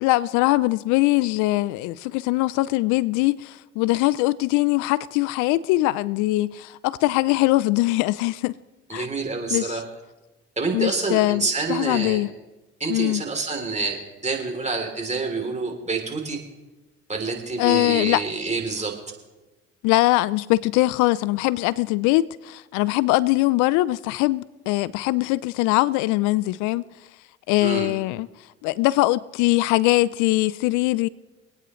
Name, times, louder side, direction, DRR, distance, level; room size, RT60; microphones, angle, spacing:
voice 1, 0.0-8.5 8.9-9.1 9.5-9.8 10.7-12.3 12.9-13.2 17.6-18.2 19.8-26.8 27.5-28.3 28.6-31.1, left 19 dB, 80° left, 0.5 m, -22 dB
voice 2, 8.9-9.8 10.6-12.2 12.8-14.0 14.2-16.4 17.1-18.9 27.6-27.9, right 4 dB, 25° right, 3.1 m, -27 dB
25.5 x 9.2 x 3.1 m
supercardioid pair, 70°, 30 cm